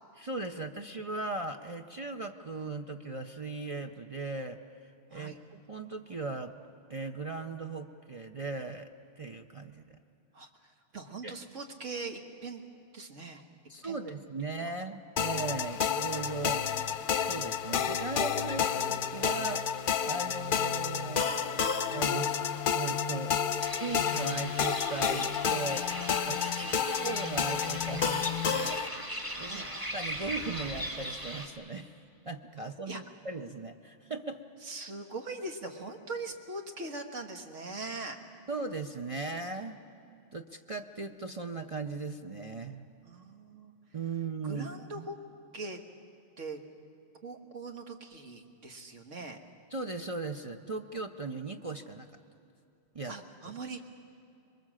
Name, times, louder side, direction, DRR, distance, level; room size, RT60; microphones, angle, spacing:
voice 1, 0.2-4.6 5.1-6.6 6.9-8.9 9.2-10.0 11.2-11.4 13.7-16.7 17.2-19.7 20.0-22.5 22.7-23.4 23.8-25.9 26.3-26.7 27.0-28.8 29.4-29.6 29.9-31.9 32.3-34.4 38.5-39.8 40.3-42.8 43.9-44.7 44.9-45.1 49.7-52.1 52.9-53.1, right 3 dB, 35° right, 5 dB, 0.6 m, -38 dB
voice 2, 10.3-12.6 12.9-13.4 13.8-14.0 26.6-26.9 29.4-29.7 32.9-33.0 34.6-38.2 43.0-43.7 44.4-45.2 45.5-45.8 46.4-46.6 47.2-49.4 53.1-53.9, right 3 dB, 90° right, 4 dB, 1.9 m, -41 dB
sound 1, 15.2-28.9, left 7 dB, 50° left, 0.8 m, -30 dB
sound 2, 23.6-31.5, equal, 15° right, 2.1 m, -39 dB
26.0 x 22.5 x 7.5 m, 2.6 s
omnidirectional pair, 1.2 m